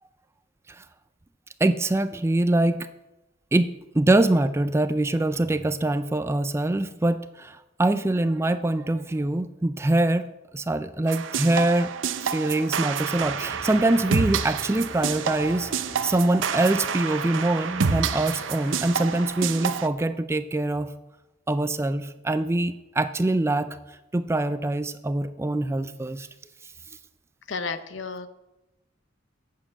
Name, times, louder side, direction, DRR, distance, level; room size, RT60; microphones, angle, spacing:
voice 1, 1.6-2.9 3.5-3.7 3.9-10.3 10.5-11.9 12.2-15.7 16.0-20.9 21.5-23.8 24.1-26.3, right 2 dB, 15° right, 12 dB, 0.3 m, -24 dB
sound 1, 11.1-19.9, right 6 dB, 70° right, 0.6 m, -28 dB
sound 2, 13.1-19.2, left 1 dB, 40° left, 1.6 m, -44 dB
voice 2, 27.5-28.3, left 4 dB, 65° left, 11 dB, 0.8 m, -32 dB
8.6 x 7.4 x 7.4 m, 0.96 s
head